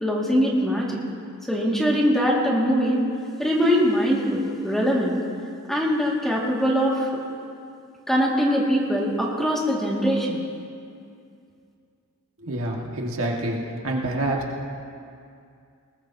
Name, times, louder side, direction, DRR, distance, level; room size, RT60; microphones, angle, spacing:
voice 1, 0.0-1.0 1.5-3.0 3.4-5.2 5.7-7.1 8.1-10.4, equal, ahead, -4 dB, 2.1 m, -22 dB
voice 2, 12.4-13.6 13.8-14.4, right 1 dB, 65° right, -1 dB, 1.7 m, -27 dB
21.0 x 18.5 x 2.8 m, 2.4 s
head